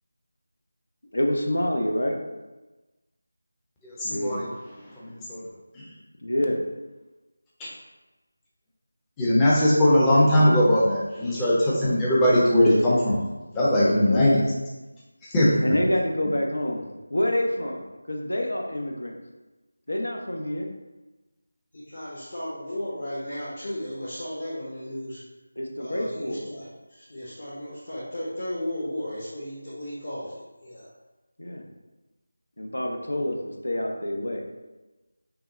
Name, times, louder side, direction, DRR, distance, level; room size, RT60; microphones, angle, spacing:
voice 1, 1.1-2.2 4.0-4.4 6.2-6.6 13.9-14.3 15.6-19.2 19.9-20.7 25.6-26.4 31.4-31.6 32.6-34.4, left 1 dB, 65° left, 1 dB, 0.8 m, -27 dB
voice 2, 3.8-4.5 5.0-5.4 5.7-5.8 7.6-7.7 9.2-13.2 13.5-14.4 15.2-15.5, left 1 dB, 10° left, -7 dB, 0.7 m, -20 dB
voice 3, 21.7-25.2 25.8-30.9, left 1 dB, 45° left, -8 dB, 1.1 m, -35 dB
5.9 x 2.2 x 3.8 m, 1.1 s
figure-of-eight pair, 165°, 0 cm